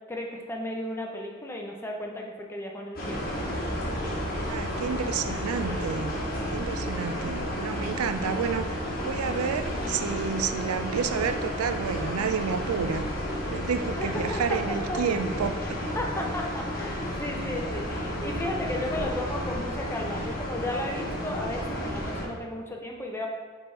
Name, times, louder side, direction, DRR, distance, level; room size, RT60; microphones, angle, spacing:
voice 1, 0.1-3.4 14.0-15.2 16.0-23.3, left 1 dB, 10° left, 0 dB, 0.6 m, -34 dB
sound 1, 3.0-22.2, equal, 45° left, 1.3 m, -32 dB
voice 2, 4.5-6.1 6.5-8.8 9.0-13.1 13.5-15.6, right 6 dB, 85° right, 9 dB, 0.4 m, -30 dB
5.1 x 4.5 x 4.5 m, 1.5 s
head